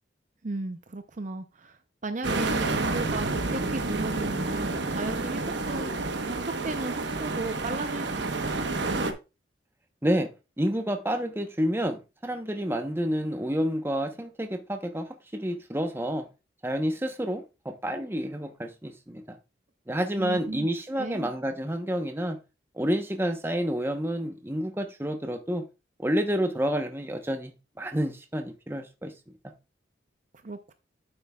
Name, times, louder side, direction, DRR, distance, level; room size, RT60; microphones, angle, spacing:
voice 1, 0.4-8.5 20.2-20.7 21.0-21.3 30.4-30.7, right 3 dB, 40° right, 0.6 m, -35 dB
sound 1, 2.2-9.1, right 3 dB, 75° right, 1.0 m, -29 dB
voice 2, 10.0-16.3 16.6-19.4 19.9-22.4 22.8-25.7 26.0-29.1, equal, 10° right, 0.9 m, -29 dB
9.5 x 7.8 x 2.3 m
head